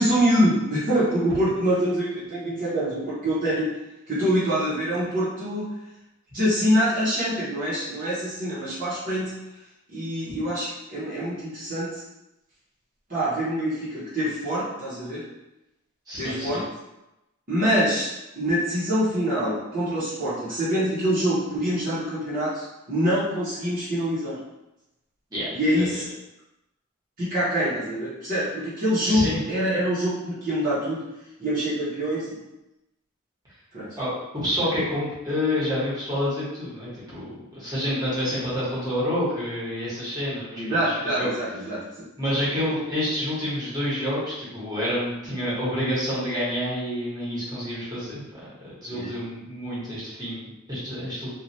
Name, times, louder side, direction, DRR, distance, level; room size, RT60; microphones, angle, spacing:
voice 1, 0.0-3.7 4.1-5.7 6.3-9.3 9.9-12.0 13.1-15.2 16.2-16.6 17.5-18.1 18.4-24.4 25.5-26.0 27.2-31.0 31.4-32.4 33.7-33.9 40.6-42.1 48.9-49.1, equal, 40° right, -11 dB, 0.9 m, -25 dB
voice 2, 16.1-16.6 25.3-25.9 29.0-29.4 34.0-41.3 42.2-51.3, left 1 dB, 20° right, -9 dB, 1.1 m, -28 dB
3.1 x 2.4 x 2.7 m, 0.93 s
head